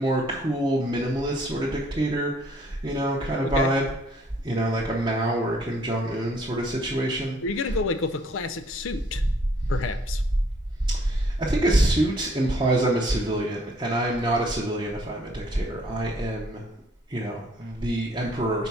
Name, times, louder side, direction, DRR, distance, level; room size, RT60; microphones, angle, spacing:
voice 1, 0.0-3.9 4.1-7.8 10.9-16.7 17.1-18.7, right 1 dB, 25° right, -4 dB, 0.7 m, -26 dB
voice 2, 7.4-9.2 9.7-10.2, left 4 dB, 85° left, 10 dB, 0.5 m, -29 dB
5.0 x 4.6 x 5.5 m, 0.81 s
head